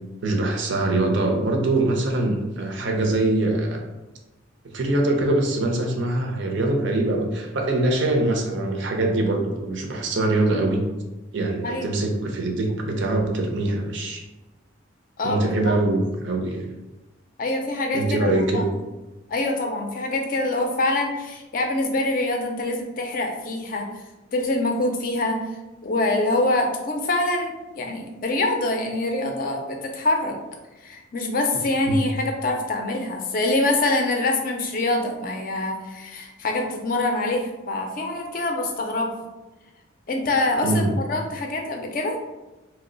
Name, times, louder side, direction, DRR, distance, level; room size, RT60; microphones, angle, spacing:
voice 1, 0.2-3.8 4.7-10.8 11.3-14.2 15.2-16.6 17.9-18.7 31.8-32.0 40.6-40.9, right 2 dB, 65° right, 2 dB, 0.5 m, -23 dB
voice 2, 15.2-15.8 17.4-18.7 19.3-23.9 24.3-25.5 25.8-30.4 30.8-39.3 40.1-42.2, left 2 dB, 40° left, 3 dB, 0.4 m, -25 dB
2.9 x 2.0 x 3.7 m, 1.1 s
head